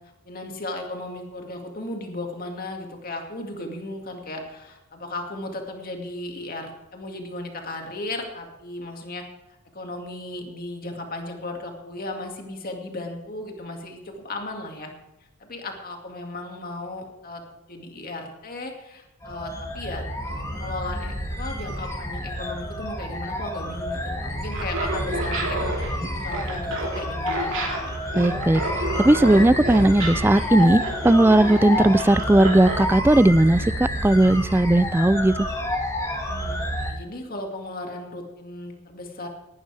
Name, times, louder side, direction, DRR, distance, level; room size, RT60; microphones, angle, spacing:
voice 1, 0.2-9.2 9.7-14.9 15.4-17.4 17.7-27.6 36.3-39.3, left 2 dB, 40° left, 2 dB, 2.2 m, -35 dB
sound 1, 19.2-36.9, left 1 dB, 15° left, 1.9 m, -29 dB
Laughter, 24.4-32.8, right 2 dB, 55° right, 3.1 m, -30 dB
voice 2, 28.1-35.5, right 1 dB, 10° right, 16 dB, 0.3 m, -17 dB
18.0 x 12.0 x 3.4 m, 0.98 s
head